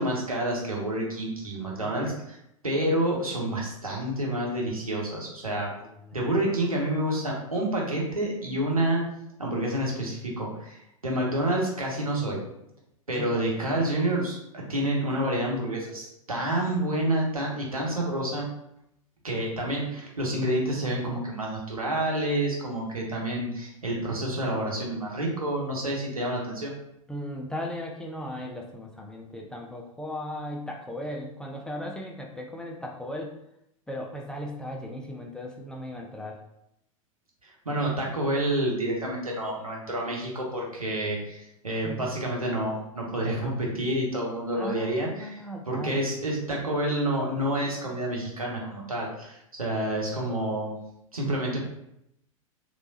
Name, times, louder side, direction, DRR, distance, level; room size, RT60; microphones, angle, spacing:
voice 1, 0.0-2.4 2.6-5.7 6.1-9.0 9.4-10.8 11.0-12.4 13.1-18.5 19.2-26.7 37.4-50.8 51.1-51.6, right 1 dB, 85° right, -2 dB, 1.0 m, -28 dB
voice 2, 1.6-2.0 5.8-6.0 13.2-13.3 27.1-33.4 33.9-36.4 41.8-42.1 44.6-46.1, left 1 dB, 5° left, 0 dB, 0.3 m, -37 dB
3.1 x 3.0 x 2.7 m, 0.79 s
figure-of-eight pair, 95°, 18 cm